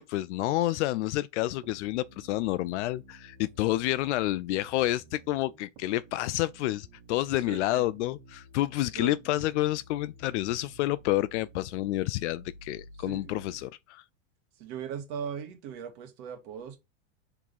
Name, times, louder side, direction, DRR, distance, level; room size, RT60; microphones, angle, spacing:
voice 1, 0.0-14.0, left 16 dB, 65° left, 0.5 m, -29 dB
sound 1, 1.6-13.6, right 1 dB, 75° right, 1.8 m, -53 dB
voice 2, 7.3-7.8 8.9-9.1 13.0-13.6 14.6-16.8, right 7 dB, 50° right, 1.9 m, -39 dB
4.7 x 3.8 x 5.4 m
supercardioid pair, 150°, 37 cm